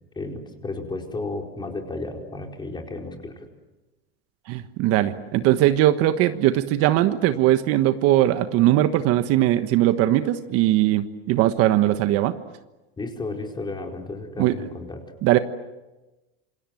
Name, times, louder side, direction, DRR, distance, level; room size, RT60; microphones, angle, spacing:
voice 1, 0.1-3.5 13.0-15.0, left 2 dB, 15° left, 2 dB, 4.7 m, -33 dB
voice 2, 4.5-12.3 14.4-14.5 15.2-15.4, right 14 dB, 50° right, 10 dB, 1.4 m, -20 dB
27.5 x 26.5 x 7.8 m, 1.1 s
supercardioid pair, 135°, 31 cm